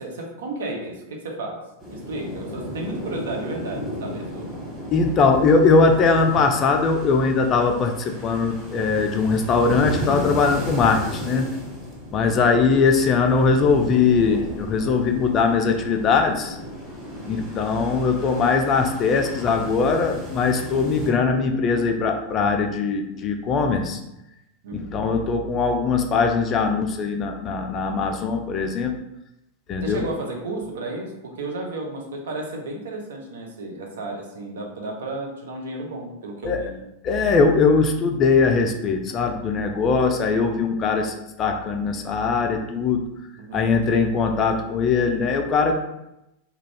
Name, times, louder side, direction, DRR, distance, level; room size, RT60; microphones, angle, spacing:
voice 1, 0.0-4.5 12.2-12.6 17.2-17.4 24.6-25.0 29.8-36.8 43.4-43.7, right 2 dB, 60° right, 1 dB, 0.5 m, -33 dB
sound 1, 1.8-21.1, left 1 dB, ahead, 1.2 m, -34 dB
voice 2, 4.9-11.5 12.1-16.6 17.3-24.0 24.7-28.9 29.7-30.1 36.4-36.6 37.0-43.1 43.5-45.7, left 4 dB, 30° left, 4 dB, 0.3 m, -21 dB
2.4 x 2.2 x 3.2 m, 0.87 s
figure-of-eight pair, 90°, 0 cm